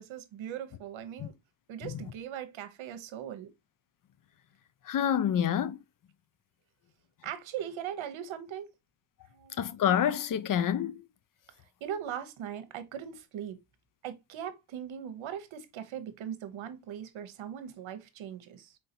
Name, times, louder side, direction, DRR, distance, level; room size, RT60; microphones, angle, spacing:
voice 1, 0.0-1.4 1.7-3.5 7.2-8.7 9.3-9.7 11.8-13.6 14.0-18.8, right 9 dB, 70° right, 0.9 m, -40 dB
voice 2, 4.9-5.8 9.6-11.0, left 9 dB, 45° left, 0.5 m, -27 dB
3.9 x 3.5 x 2.7 m
cardioid pair, 80°, 49 cm